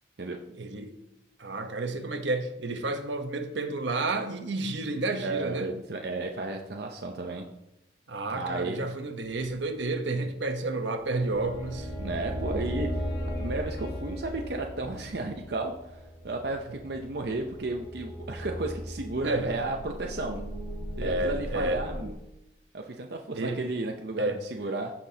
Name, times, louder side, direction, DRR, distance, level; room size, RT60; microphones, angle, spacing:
voice 1, 0.5-1.0 1.4-5.7 8.1-12.4 19.2-19.6 21.0-21.8 23.3-23.6 24.2-24.4, right 2 dB, 85° right, 1.0 m, -31 dB
voice 2, 5.2-7.5 8.3-8.8 12.0-13.0 13.4-15.7 16.2-20.4 21.0-22.1 22.7-24.9, right 2 dB, 65° right, 0.7 m, -33 dB
Wind instrument woodwind instrument, 11.0-15.8, equal, 55° left, 1.5 m, -48 dB
sound 1, 11.0-22.1, equal, 5° left, 3.0 m, -37 dB
15.0 x 6.0 x 2.8 m
head